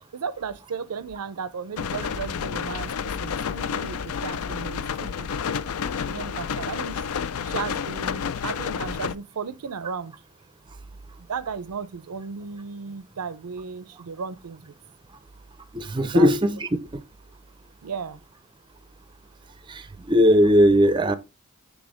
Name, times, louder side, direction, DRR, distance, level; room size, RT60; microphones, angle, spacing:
voice 1, 0.1-2.9 3.2-5.3 6.1-7.0 7.4-10.1 11.2-14.7 16.0-16.3 17.8-18.2, right 6 dB, 90° right, 0.5 m, -35 dB
sound 1, 1.8-9.1, left 6 dB, 70° left, 0.4 m, -30 dB
voice 2, 15.7-17.0 19.7-21.1, equal, 20° right, 0.5 m, -19 dB
6.1 x 3.4 x 4.9 m
head